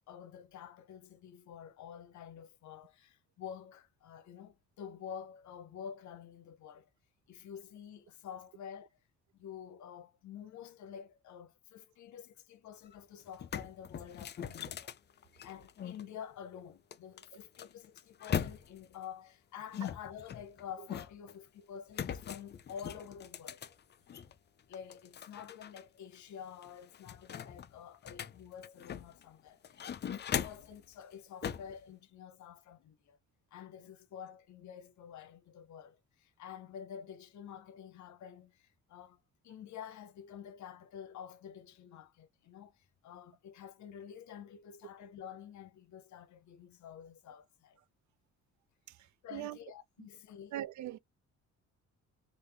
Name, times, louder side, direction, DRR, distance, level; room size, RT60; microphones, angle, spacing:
voice 1, 0.1-6.9 7.3-8.9 9.3-14.9 15.4-23.6 24.7-33.2 33.5-47.8 49.2-50.6, left 8 dB, 70° left, 0.7 m, -49 dB
sound 1, 12.9-13.0 13.3-16.0 16.9-18.9 19.7-21.3 21.9-24.3 24.7-25.8 26.1-26.2 26.6-29.2 29.6-30.8 31.4-31.7, left 8 dB, 35° left, 0.4 m, -40 dB
voice 2, 50.5-51.0, right 13 dB, 70° right, 0.5 m, -39 dB
3.4 x 2.5 x 3.3 m
cardioid pair, 90°, 30 cm